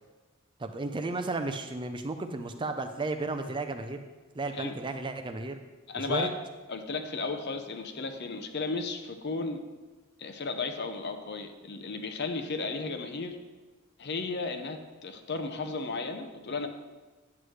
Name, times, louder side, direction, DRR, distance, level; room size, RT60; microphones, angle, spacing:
voice 1, 0.6-4.0 4.3-5.6 6.0-6.3, right 3 dB, 20° right, 7 dB, 0.4 m, -33 dB
voice 2, 5.9-6.3 6.7-9.6 10.2-13.4 14.0-16.7, left 3 dB, 50° left, 6 dB, 0.7 m, -34 dB
9.5 x 7.9 x 3.2 m, 1.3 s
head